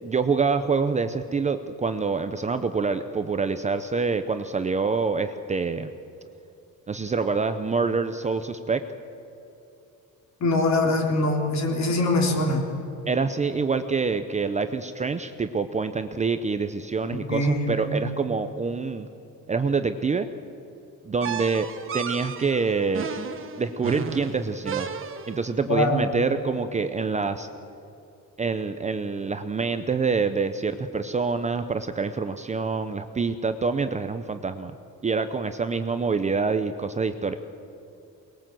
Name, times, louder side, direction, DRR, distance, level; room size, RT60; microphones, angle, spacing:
voice 1, 0.0-5.9 6.9-8.8 13.1-19.1 19.5-20.3 21.0-23.1 23.6-24.9 25.3-27.5 28.4-34.7 35.0-37.3, right 4 dB, 20° right, 9 dB, 0.6 m, -26 dB
voice 2, 10.4-12.6 17.1-18.0 25.7-26.0, left 2 dB, 55° left, 1 dB, 3.8 m, -23 dB
sound 1, 21.2-25.5, right 6 dB, 35° right, 1.4 m, -33 dB
23.5 x 20.5 x 7.6 m, 2.8 s
cardioid pair, 170°, 34 cm